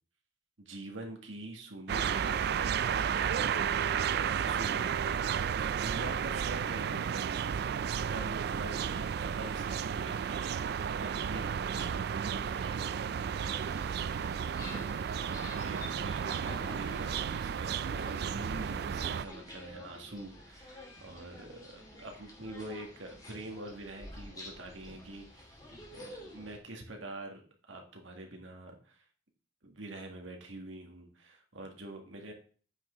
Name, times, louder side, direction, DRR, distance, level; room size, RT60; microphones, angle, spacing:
voice 1, 0.6-13.2 15.4-29.0 29.6-32.3, right 2 dB, 90° right, 3 dB, 1.9 m, -46 dB
sound 1, 1.9-19.3, right 7 dB, 55° right, 0.3 m, -33 dB
sound 2, 13.3-26.6, left 1 dB, 20° left, 2.5 m, -49 dB
9.0 x 6.0 x 3.8 m, 0.41 s
head